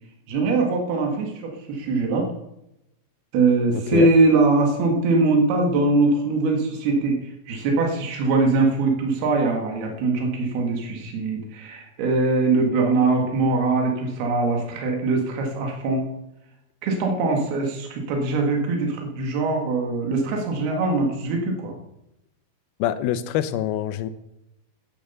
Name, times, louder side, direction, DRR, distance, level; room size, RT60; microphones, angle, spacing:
voice 1, 0.3-2.3 3.3-16.1 16.8-21.8, right 3 dB, 75° right, 1 dB, 3.8 m, -22 dB
voice 2, 22.8-24.1, left 11 dB, 80° left, 12 dB, 2.6 m, -24 dB
10.0 x 10.0 x 6.9 m, 0.86 s
omnidirectional pair, 4.6 m